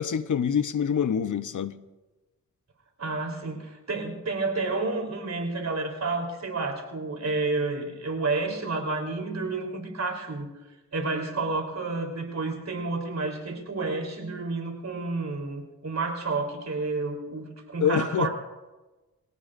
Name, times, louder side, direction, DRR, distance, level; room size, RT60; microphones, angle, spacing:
voice 1, 0.0-1.8 17.8-18.3, left 7 dB, 65° left, 0.8 m, -25 dB
voice 2, 3.0-10.5 10.9-18.3, right 3 dB, 55° right, 3.6 m, -30 dB
24.5 x 17.0 x 2.6 m
cardioid pair, 75°, 33 cm